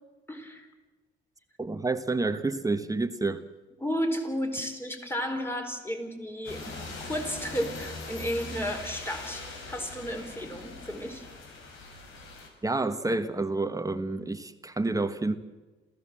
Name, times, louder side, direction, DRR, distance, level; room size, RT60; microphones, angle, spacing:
voice 1, 0.3-0.7 3.8-11.2, equal, 10° left, 5 dB, 4.3 m, -33 dB
voice 2, 1.6-3.4 12.6-15.3, right 3 dB, 15° right, 9 dB, 1.3 m, -29 dB
sound 1, 6.4-12.5, left 3 dB, 80° left, 4.7 m, -41 dB
27.5 x 15.0 x 7.6 m, 1.2 s
cardioid pair, 90°, 20 cm